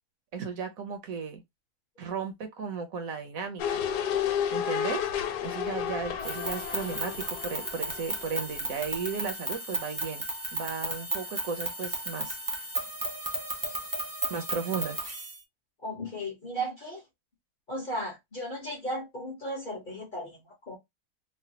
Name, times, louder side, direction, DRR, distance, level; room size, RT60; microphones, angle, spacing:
voice 1, 0.3-1.4 2.0-3.8 4.5-5.1 5.4-10.2 10.5-12.4 14.3-15.0, right 6 dB, 65° right, 1.0 m, -35 dB
sound 1, 3.6-8.6 8.9-9.0, left 9 dB, 85° left, 1.2 m, -31 dB
sound 2, 6.2-15.4, right 1 dB, 30° right, 0.4 m, -34 dB
voice 2, 15.8-17.0 17.7-20.8, equal, 40° left, 0.9 m, -35 dB
3.2 x 2.2 x 2.7 m
omnidirectional pair, 1.7 m